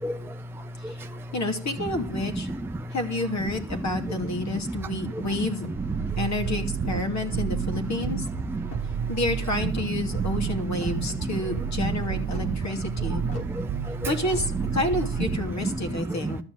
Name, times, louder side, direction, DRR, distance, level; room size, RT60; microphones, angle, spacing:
voice 1, 0.0-0.4 0.8-1.2 2.5-2.6 2.8-2.9 5.1-5.3 6.0-6.1 8.5-8.6 13.1-14.1 16.1-16.3, right 1 dB, 5° right, 5 dB, 0.7 m, -33 dB
voice 2, 1.3-2.5 2.9-5.7 6.2-8.2 9.1-13.2 14.1-16.4, left 2 dB, 40° left, 3 dB, 2.7 m, -29 dB
sound 1, 5.7-15.4, right 9 dB, 40° right, 1.1 m, -31 dB
sound 2, 8.6-9.1 9.6-10.1 10.7-11.2 12.3-12.5 13.3-13.5 14.3-14.5, left 2 dB, 70° left, 4.2 m, -40 dB
13.5 x 5.7 x 9.6 m, 0.39 s
cardioid pair, 90°, 42 cm